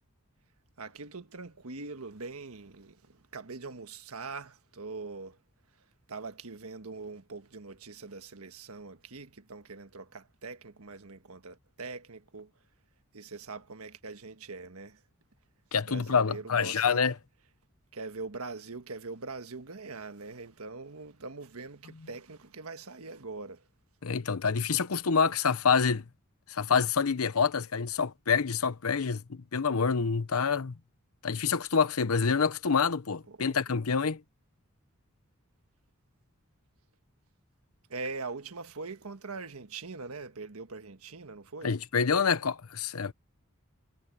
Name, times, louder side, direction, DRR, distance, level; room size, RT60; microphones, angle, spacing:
voice 1, 0.8-5.4 6.1-12.5 13.1-15.0 15.8-17.0 17.9-23.6 33.3-33.6 37.9-41.7, right 3 dB, 90° right, 1.5 m, -42 dB
voice 2, 15.7-17.1 24.0-26.1 26.5-30.8 31.2-34.2 41.6-43.1, left 5 dB, 80° left, 0.8 m, -27 dB
head